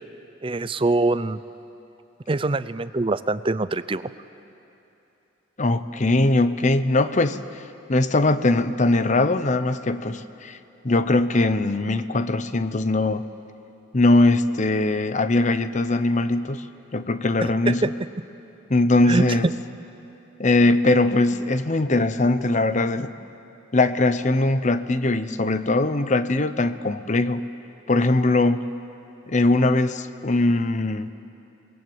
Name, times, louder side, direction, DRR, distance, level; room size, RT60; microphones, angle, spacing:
voice 1, 0.4-1.4 2.3-4.1 17.4-17.9 19.1-19.5, right 2 dB, 25° right, 15 dB, 0.5 m, -24 dB
voice 2, 5.6-7.4 7.9-10.6 10.8-13.2 13.9-16.6 16.9-17.9 18.7-19.5 20.4-23.1 23.7-27.4 27.9-28.7 29.3-31.1, left 2 dB, 40° left, 12 dB, 0.8 m, -21 dB
28.0 x 20.5 x 7.9 m, 3.0 s
head